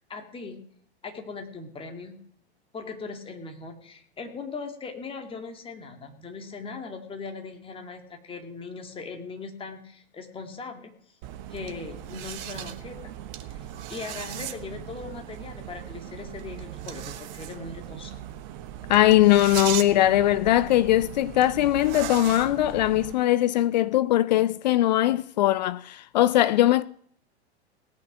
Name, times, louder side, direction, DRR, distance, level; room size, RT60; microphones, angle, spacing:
voice 1, 0.1-0.6 1.0-2.2 2.7-11.2 11.5-13.1 13.5-18.2, left 4 dB, 15° left, 2.3 m, -39 dB
sound 1, 11.2-23.1, right 12 dB, 40° right, 1.2 m, -38 dB
voice 2, 18.9-26.8, left 14 dB, 40° left, 0.5 m, -20 dB
17.5 x 9.5 x 6.0 m
figure-of-eight pair, 100°, 34 cm